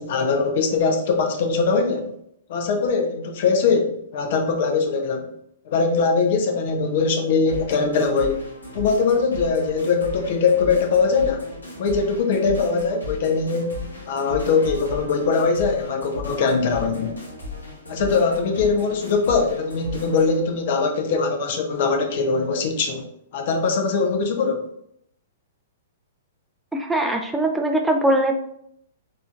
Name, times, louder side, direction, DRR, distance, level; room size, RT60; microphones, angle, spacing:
voice 1, 0.0-2.1 2.5-5.3 5.7-8.4 8.7-11.5 11.8-13.8 14.1-17.1 17.9-23.1 23.3-24.6, left 4 dB, 55° left, 4 dB, 0.6 m, -21 dB
sound 1, 7.5-20.4, left 2 dB, 90° left, 1.2 m, -36 dB
voice 2, 26.7-28.3, right 1 dB, 5° right, 3 dB, 0.3 m, -21 dB
4.1 x 2.6 x 2.4 m, 0.73 s
hypercardioid pair, 115°, 0 cm